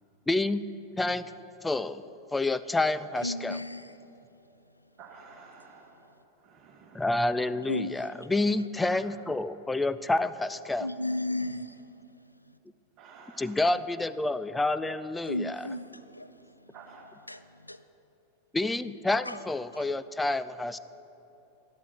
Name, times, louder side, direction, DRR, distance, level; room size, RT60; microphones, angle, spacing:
voice 1, 0.3-0.6 1.0-1.2 1.6-2.0 2.3-3.6 6.9-10.9 13.4-15.7 18.5-20.8, left 2 dB, 10° left, 14 dB, 0.3 m, -28 dB
voice 2, 3.2-3.9 7.7-8.0 10.8-11.7 15.3-16.8 17.3-17.8 19.3-19.4 19.7-19.9, left 1 dB, 85° left, 12 dB, 0.3 m, -34 dB
voice 3, 5.0-6.1 6.4-7.0 8.9-9.0 13.0-13.5 16.7-17.0, right 5 dB, 35° right, 0 dB, 1.5 m, -51 dB
11.5 x 11.0 x 5.9 m, 2.9 s
figure-of-eight pair, 90°, 0 cm